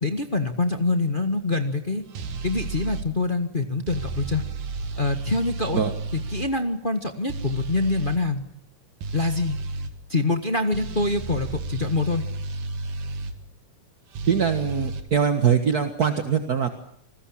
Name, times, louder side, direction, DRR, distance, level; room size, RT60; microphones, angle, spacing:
voice 1, 0.0-2.0 2.4-4.4 5.0-5.8 6.1-8.4 9.1-9.6 10.1-12.2, left 3 dB, 35° left, 6 dB, 0.8 m, -25 dB
sound 1, 2.1-3.1 3.9-6.5 7.3-8.2 9.0-9.9 10.7-13.4 14.1-15.0, right 3 dB, 80° right, 3.5 m, -32 dB
voice 2, 14.3-16.7, right 7 dB, 40° right, 7 dB, 1.4 m, -22 dB
28.0 x 20.5 x 8.8 m, 0.68 s
omnidirectional pair, 3.6 m